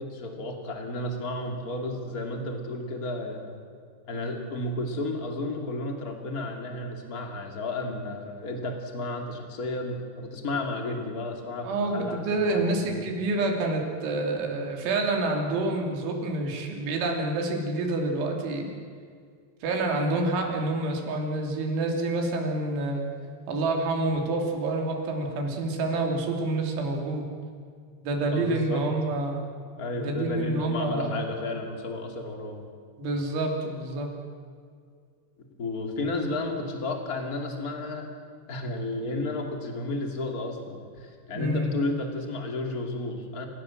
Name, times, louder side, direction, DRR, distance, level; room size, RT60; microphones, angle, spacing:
voice 1, 0.0-3.6 4.1-12.8 28.3-28.9 29.8-32.7 35.6-38.1 38.5-43.5, left 2 dB, 25° left, 3 dB, 2.0 m, -32 dB
voice 2, 11.6-18.7 19.6-23.1 23.5-27.3 28.0-29.4 30.0-31.2 33.0-34.1 41.4-41.8, right 2 dB, 80° right, 2 dB, 5.4 m, -28 dB
29.5 x 16.5 x 7.7 m, 2.1 s
omnidirectional pair, 5.4 m